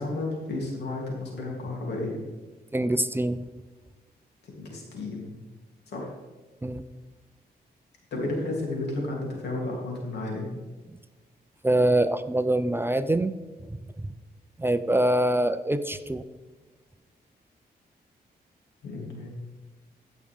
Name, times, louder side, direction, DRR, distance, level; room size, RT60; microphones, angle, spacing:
voice 1, 0.0-2.2 4.4-5.4 5.9-6.1 8.1-10.5 18.8-19.3, left 2 dB, 85° left, -2 dB, 3.1 m, -32 dB
voice 2, 2.7-3.4 6.6-6.8 11.6-13.3 13.7-13.8 14.6-16.2, right 1 dB, 15° right, 11 dB, 0.5 m, -24 dB
15.5 x 6.3 x 3.6 m, 1.3 s
cardioid pair, 85°, 17 cm